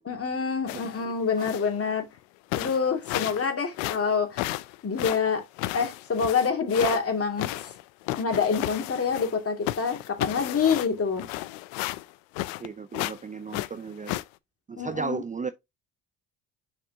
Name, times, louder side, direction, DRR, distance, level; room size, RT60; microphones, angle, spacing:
voice 1, 0.1-2.1 2.6-4.4 4.8-5.4 5.7-7.5 8.1-11.3 14.8-15.2, left 5 dB, 35° left, 2.4 m, -26 dB
sound 1, 0.7-1.0 1.4-1.7 2.2-2.3 2.5-3.5 3.7-7.0 7.4-9.4 9.6-12.7 12.9-13.2 13.5-14.2, left 17 dB, 90° left, 0.6 m, -33 dB
voice 2, 12.6-14.1 14.7-15.5, right 5 dB, 20° right, 0.5 m, -34 dB
6.6 x 5.2 x 2.7 m
supercardioid pair, 75°, 39 cm